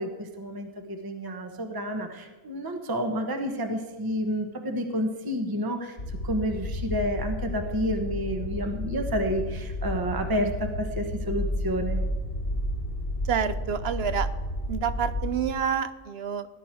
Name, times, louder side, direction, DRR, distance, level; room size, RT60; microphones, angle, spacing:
voice 1, 0.0-12.0, equal, 20° right, 4 dB, 1.1 m, -30 dB
sound 1, 6.0-15.5, left 1 dB, 75° left, 2.5 m, -32 dB
voice 2, 13.3-14.3 14.7-16.5, right 7 dB, 60° right, 13 dB, 0.8 m, -28 dB
17.5 x 11.0 x 4.5 m, 1.2 s
omnidirectional pair, 1.3 m